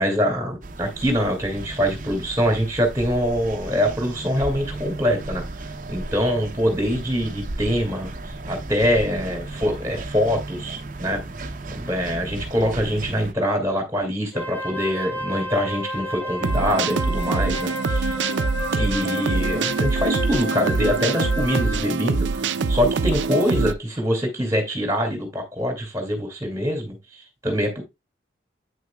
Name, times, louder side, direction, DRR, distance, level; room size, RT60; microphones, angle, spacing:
voice 1, 0.0-5.4 5.9-8.1 8.5-11.2 11.7-18.2 18.7-22.4 22.7-27.0 27.4-27.8, equal, 15° right, 2.4 m, -24 dB
sound 1, 0.6-13.3, right 2 dB, 45° right, 0.7 m, -35 dB
Wind instrument woodwind instrument, 14.3-22.0, left 1 dB, 10° left, 0.9 m, -31 dB
sound 2, 16.4-23.7, right 4 dB, 85° right, 0.5 m, -24 dB
8.8 x 6.4 x 2.3 m
head